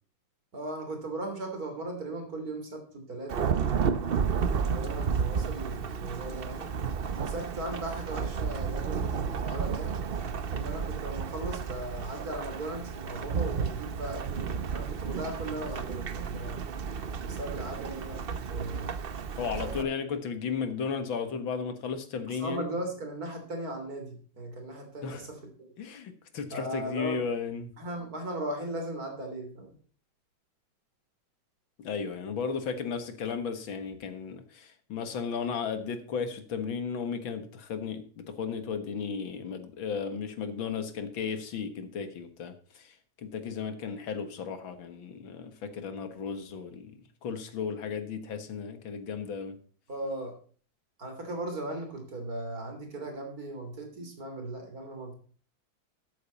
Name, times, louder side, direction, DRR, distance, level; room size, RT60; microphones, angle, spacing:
voice 1, 0.5-4.1 4.6-6.7 7.2-10.0 10.5-16.6 17.2-19.0 19.6-19.9 22.3-25.7 26.5-27.2 27.8-29.8 49.9-50.3 51.0-55.1, right 1 dB, 45° right, 4 dB, 3.6 m, -38 dB
Thunderstorm / Rain, 3.3-19.8, right 6 dB, 75° right, 0.5 m, -32 dB
voice 2, 19.4-22.7 25.0-25.2 25.8-27.7 31.8-46.9 47.2-49.6, left 6 dB, 75° left, 9 dB, 2.2 m, -35 dB
13.0 x 8.8 x 4.1 m, 0.42 s
omnidirectional pair, 2.2 m